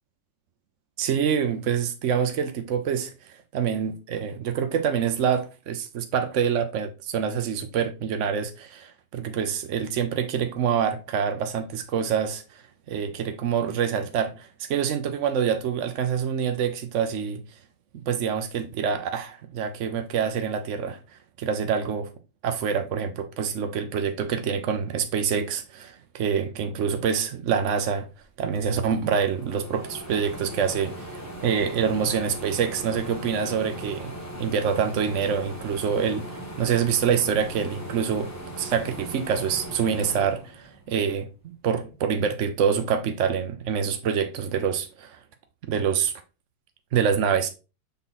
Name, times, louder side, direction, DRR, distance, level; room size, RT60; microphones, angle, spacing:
voice 1, 1.0-12.6 12.9-17.4 17.9-21.0 21.4-22.1 22.4-28.1 28.4-34.1 34.4-41.3 41.6-45.2 45.6-46.1 46.9-47.5, right 7 dB, 75° right, 0.6 m, -26 dB
sound 1, 28.2-28.3 28.5-41.1 41.6-42.7, right 1 dB, 10° left, 0.9 m, -39 dB
6.9 x 3.7 x 4.0 m
omnidirectional pair, 2.1 m